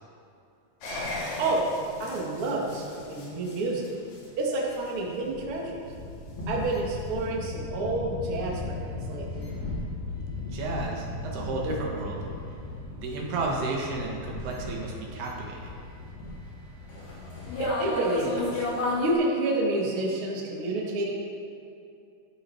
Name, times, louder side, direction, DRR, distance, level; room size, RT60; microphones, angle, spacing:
sound 1, 0.8-19.1, left 2 dB, 75° left, 5.0 m, -36 dB
voice 1, 1.4-3.9 4.4-5.8 6.5-9.5 17.6-18.7 19.0-21.1, right 2 dB, 40° right, -3 dB, 2.4 m, -29 dB
voice 2, 10.5-12.2 13.0-15.8, right 3 dB, 80° right, -2 dB, 3.8 m, -32 dB
15.5 x 12.5 x 4.6 m, 2.6 s
omnidirectional pair, 4.5 m